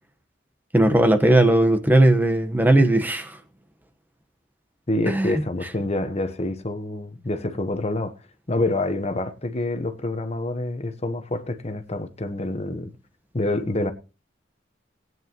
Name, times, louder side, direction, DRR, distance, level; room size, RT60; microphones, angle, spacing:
voice 1, 0.7-3.4 5.1-5.4, right 1 dB, 10° right, 1.1 m, -18 dB
voice 2, 4.9-8.2 8.5-12.9 13.3-13.9, left 2 dB, 35° left, 1.1 m, -27 dB
19.0 x 9.4 x 3.0 m
head